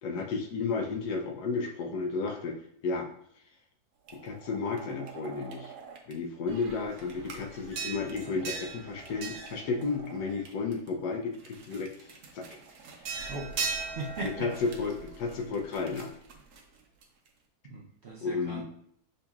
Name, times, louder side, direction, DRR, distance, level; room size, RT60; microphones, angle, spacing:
voice 1, 0.0-3.1 4.1-5.7 6.1-12.6 13.1-13.2 14.2-16.1 18.2-18.6, left 4 dB, 80° left, 3 dB, 1.3 m, -33 dB
sound 1, 4.1-6.1 6.5-10.9 11.3-17.3, right 5 dB, 75° right, 1.2 m, -41 dB
voice 2, 13.3-14.5 17.6-18.6, right 2 dB, 55° right, -3 dB, 0.7 m, -39 dB
6.6 x 2.8 x 2.3 m, 0.68 s
omnidirectional pair, 1.7 m